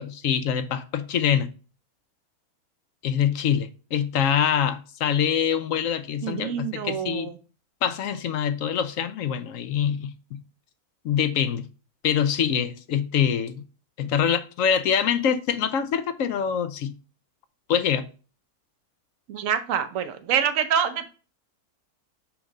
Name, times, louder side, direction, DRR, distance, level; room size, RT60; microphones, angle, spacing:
voice 1, 0.0-1.5 3.0-7.3 7.8-10.4 11.0-11.7 12.0-13.6 14.0-16.9 17.7-18.0, left 8 dB, 70° left, 0.9 m, -25 dB
voice 2, 6.2-7.4 19.3-21.1, right 8 dB, 65° right, 1.1 m, -26 dB
5.8 x 3.8 x 5.3 m
omnidirectional pair, 1.6 m